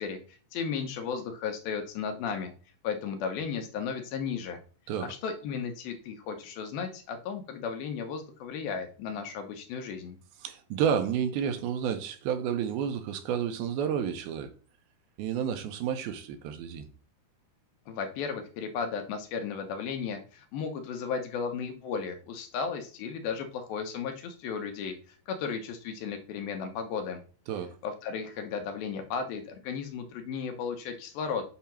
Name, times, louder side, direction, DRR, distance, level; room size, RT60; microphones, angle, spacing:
voice 1, 0.0-2.5 2.8-4.6 5.0-10.2 17.9-27.2 27.8-31.6, left 6 dB, 75° left, 2.4 m, -35 dB
voice 2, 10.4-14.5 15.2-16.9 27.5-27.8, right 8 dB, 80° right, 2.4 m, -30 dB
6.9 x 2.8 x 5.7 m
omnidirectional pair, 4.6 m